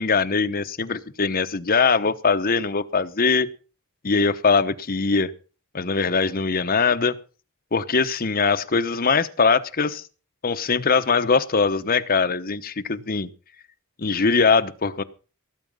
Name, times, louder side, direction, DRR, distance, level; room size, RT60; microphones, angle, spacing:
voice 1, 0.0-3.5 4.0-5.3 5.7-7.2 7.7-10.0 10.4-13.3 14.0-15.0, left 4 dB, 40° left, 10 dB, 0.9 m, -21 dB
18.0 x 8.3 x 5.5 m, 0.36 s
head